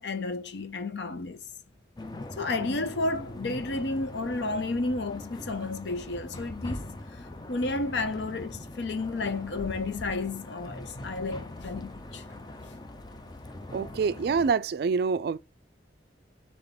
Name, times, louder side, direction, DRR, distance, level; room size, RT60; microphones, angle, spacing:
voice 1, 0.0-1.4 2.4-6.8 7.2-12.2, left 3 dB, 65° left, 0.6 m, -32 dB
sound 1, 2.0-14.5, left 1 dB, 20° left, 0.5 m, -41 dB
voice 2, 13.7-15.4, right 5 dB, 55° right, 0.3 m, -26 dB
3.5 x 3.5 x 3.9 m
head